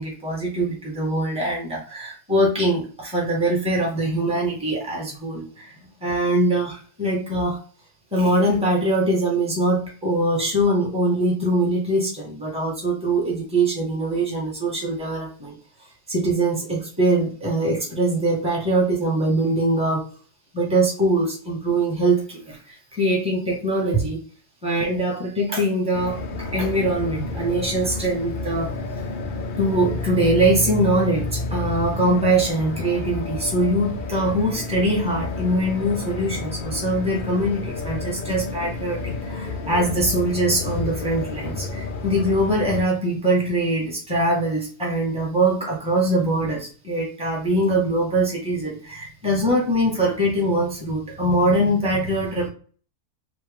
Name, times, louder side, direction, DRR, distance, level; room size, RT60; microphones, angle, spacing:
voice 1, 0.0-5.7 6.0-7.6 8.1-15.6 16.1-20.0 20.5-24.2 24.6-28.8 29.6-52.5, right 1 dB, 5° right, -3 dB, 1.5 m, -22 dB
sound 1, 25.9-42.8, left 3 dB, 75° left, 0.4 m, -30 dB
5.7 x 2.5 x 3.6 m, 0.41 s
omnidirectional pair, 1.6 m